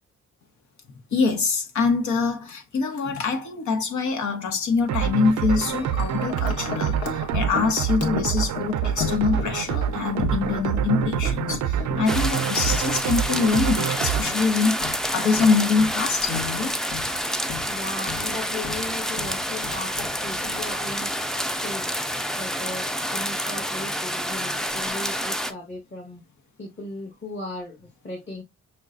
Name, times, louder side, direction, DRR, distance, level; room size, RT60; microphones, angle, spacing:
voice 1, 1.1-16.7, left 5 dB, 80° left, 1.1 m, -24 dB
Wind chime, 4.9-21.1, left 5 dB, 55° left, 1.2 m, -36 dB
sound 1, 4.9-14.2, right 10 dB, 85° right, 0.5 m, -26 dB
sound 2, 12.1-25.5, equal, ahead, 0.3 m, -28 dB
voice 2, 17.7-21.1 21.6-21.9 22.4-22.8 23.1-26.2 26.6-27.8 28.0-28.4, left 2 dB, 40° left, 1.7 m, -36 dB
6.1 x 2.3 x 2.5 m
cardioid pair, 100°, 29 cm